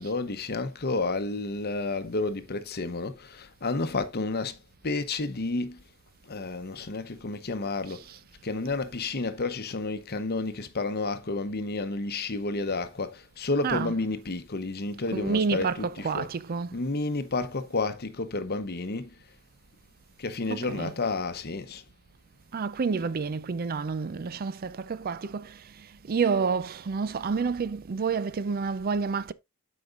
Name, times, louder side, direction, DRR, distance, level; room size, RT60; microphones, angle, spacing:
voice 1, 0.0-4.6 4.8-5.8 6.3-8.1 8.4-16.3 16.7-19.2 20.2-21.8, left 3 dB, 45° left, 0.9 m, -31 dB
voice 2, 15.1-16.7 20.5-20.9 22.5-29.3, right 5 dB, 45° right, 0.4 m, -29 dB
13.0 x 5.0 x 2.4 m
head